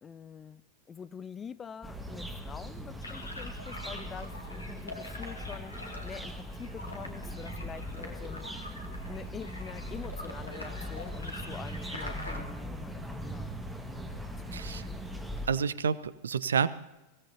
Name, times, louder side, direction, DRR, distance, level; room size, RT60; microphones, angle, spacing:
voice 1, 0.0-5.8 6.0-8.5 9.1-13.0 13.3-13.5 14.1-14.6, left 7 dB, 20° left, 17 dB, 0.4 m, -46 dB
sound 1, 1.8-15.5, equal, 5° right, 1.7 m, -40 dB
sound 2, 3.0-12.4, left 1 dB, 80° left, 2.3 m, -45 dB
voice 2, 14.5-14.9 15.5-16.7, right 6 dB, 70° right, 18 dB, 0.6 m, -29 dB
23.5 x 17.0 x 2.8 m, 1.0 s
figure-of-eight pair, 90°, 0 cm